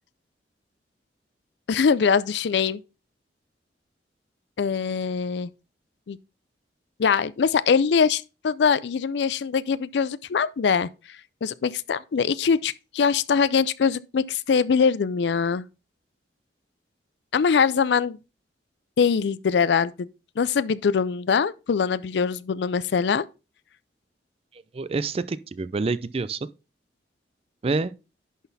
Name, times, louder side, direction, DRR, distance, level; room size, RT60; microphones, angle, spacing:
voice 1, 1.7-2.8 4.6-5.5 6.1-6.2 7.0-10.9 11.4-15.7 17.3-18.2 19.0-20.1 20.4-23.3, left 6 dB, 70° left, 0.4 m, -22 dB
voice 2, 24.5-26.5 27.6-27.9, right 3 dB, 35° right, 0.4 m, -27 dB
11.0 x 4.1 x 4.0 m
head